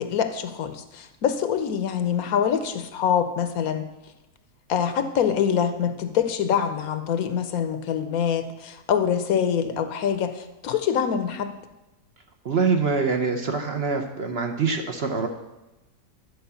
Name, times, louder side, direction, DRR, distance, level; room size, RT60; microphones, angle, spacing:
voice 1, 0.0-3.9 4.7-11.5, left 8 dB, 75° left, 10 dB, 1.2 m, -25 dB
voice 2, 12.4-15.3, right 5 dB, 50° right, 4 dB, 0.9 m, -24 dB
11.5 x 4.6 x 7.0 m, 1.0 s
omnidirectional pair, 1.6 m